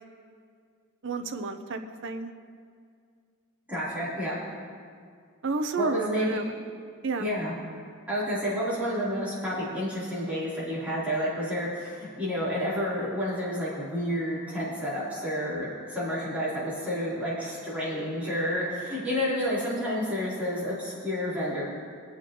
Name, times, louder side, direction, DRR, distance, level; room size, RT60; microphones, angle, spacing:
voice 1, 1.0-2.3 5.4-6.5 7.0-7.3, right 4 dB, 55° right, 7 dB, 0.7 m, -31 dB
voice 2, 3.7-4.4 5.8-6.4 7.2-7.5 8.1-21.6, equal, 5° right, -11 dB, 3.6 m, -30 dB
23.5 x 8.2 x 3.0 m, 2.2 s
head